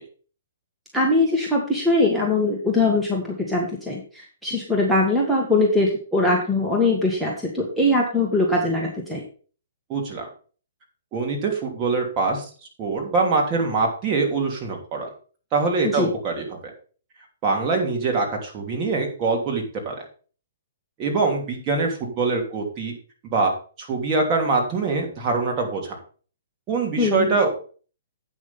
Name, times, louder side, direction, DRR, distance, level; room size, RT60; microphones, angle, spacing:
voice 1, 0.9-9.2 15.9-16.1 27.0-27.3, left 2 dB, 5° right, -3 dB, 1.8 m, -21 dB
voice 2, 9.9-10.3 11.1-12.4 12.8-15.1 15.5-16.7 17.4-19.9 21.0-22.9 23.2-23.5 23.8-26.0 26.7-27.5, right 4 dB, 30° right, 0 dB, 3.0 m, -24 dB
8.7 x 6.3 x 5.5 m, 0.40 s
hypercardioid pair, 135°, 0 cm